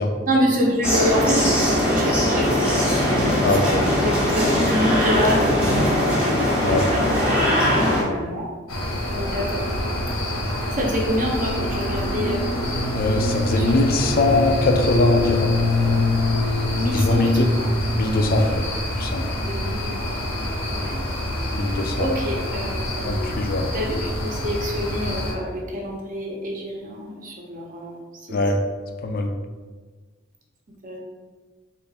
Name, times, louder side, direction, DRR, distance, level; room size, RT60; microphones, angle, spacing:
voice 1, 0.2-6.1 6.9-8.5 9.1-9.7 10.7-12.5 13.6-13.7 14.0-14.1 16.7-17.7 19.4-20.0 20.7-21.1 22.0-23.2 23.7-28.0 28.3-28.4 30.8-31.0, equal, 40° right, -1 dB, 0.7 m, -27 dB
sound 1, 0.8-8.0, equal, 5° right, 0.9 m, -20 dB
voice 2, 3.4-3.8 6.6-6.9 12.9-15.5 16.9-17.5 18.0-18.6 19.0-19.2 21.5-22.1 23.0-23.7 28.3-28.6 29.0-29.3, left 2 dB, 45° left, 4 dB, 0.4 m, -21 dB
sound 2, 8.7-25.3, left 1 dB, 85° left, 1.0 m, -25 dB
3.4 x 2.5 x 4.0 m, 1.4 s
head